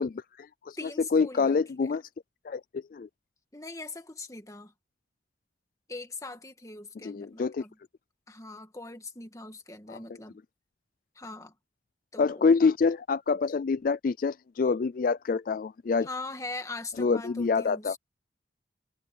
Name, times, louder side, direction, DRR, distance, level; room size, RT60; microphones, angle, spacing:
voice 1, 0.0-2.0 2.4-3.1 7.0-7.6 9.9-10.0 12.2-16.1 17.0-18.0, left 4 dB, 50° left, 0.3 m, -26 dB
voice 2, 0.8-1.9 3.5-4.7 5.9-7.8 8.3-10.4 11.2-11.5 12.1-12.5 16.0-18.0, left 3 dB, 20° left, 1.9 m, -41 dB
head